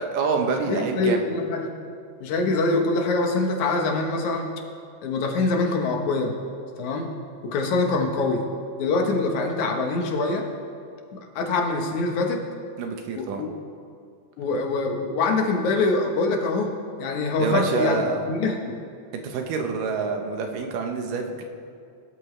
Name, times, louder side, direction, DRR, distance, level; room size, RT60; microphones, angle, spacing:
voice 1, 0.0-1.2 12.8-13.5 17.4-18.2 19.2-21.4, right 4 dB, 85° right, 4 dB, 2.8 m, -26 dB
voice 2, 0.7-1.7 2.2-4.5 5.0-6.4 6.8-7.1 7.4-8.5 8.8-10.5 11.1-12.4 13.2-13.5 14.4-16.7 17.0-18.8, left 3 dB, 70° left, 2 dB, 2.5 m, -24 dB
20.5 x 12.5 x 3.3 m, 2.3 s
omnidirectional pair, 3.7 m